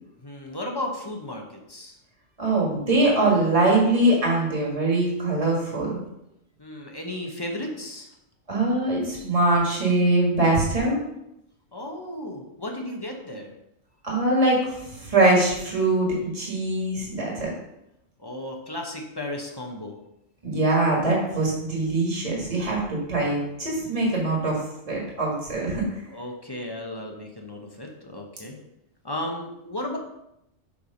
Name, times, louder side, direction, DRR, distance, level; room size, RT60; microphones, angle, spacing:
voice 1, 0.2-2.0 6.6-8.1 11.7-13.5 18.2-20.0 26.1-28.6 29.0-30.0, left 1 dB, 20° left, 1 dB, 0.8 m, -34 dB
voice 2, 2.4-6.0 8.5-11.0 14.0-14.6 14.9-17.5 20.4-24.6 24.9-25.8, right 2 dB, 30° right, -3 dB, 1.8 m, -22 dB
7.2 x 3.4 x 5.2 m, 0.83 s
omnidirectional pair, 1.3 m